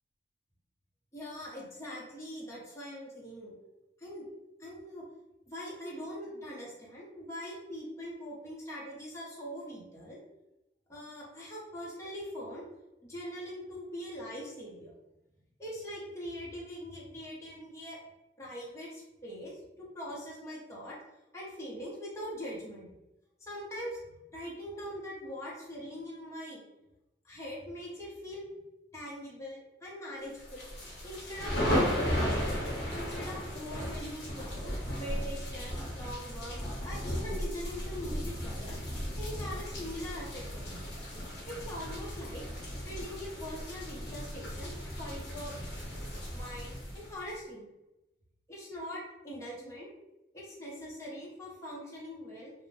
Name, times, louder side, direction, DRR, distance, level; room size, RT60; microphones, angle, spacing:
voice 1, 1.1-3.5 4.0-4.3 4.6-5.0 5.5-10.2 10.9-12.6 13.0-14.9 15.6-18.0 18.4-21.0 21.3-22.9 23.4-24.0 24.3-26.6 27.2-28.5 28.9-30.7 31.0-31.8 32.9-36.6 36.8-38.8 39.2-40.8 41.5-42.4 42.8-45.6 46.3-47.7 48.5-49.9 50.3-52.5, equal, 15° left, -6 dB, 0.7 m, -42 dB
sound 1, 30.4-47.3, equal, 65° left, 0.9 m, -35 dB
2.5 x 2.0 x 3.0 m, 0.95 s
head